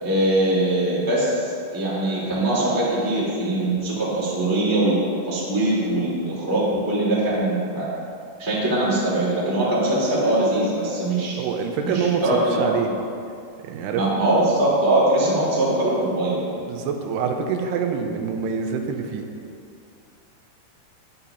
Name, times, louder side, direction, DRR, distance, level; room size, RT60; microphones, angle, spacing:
voice 1, 0.0-5.0 5.2-7.9 8.4-11.4 11.8-12.9 13.9-16.4, right 1 dB, 10° right, -7 dB, 1.2 m, -22 dB
voice 2, 11.4-12.9 13.6-14.2 16.6-19.2, right 6 dB, 90° right, 4 dB, 2.8 m, -26 dB
10.5 x 10.5 x 2.9 m, 2.4 s
omnidirectional pair, 4.8 m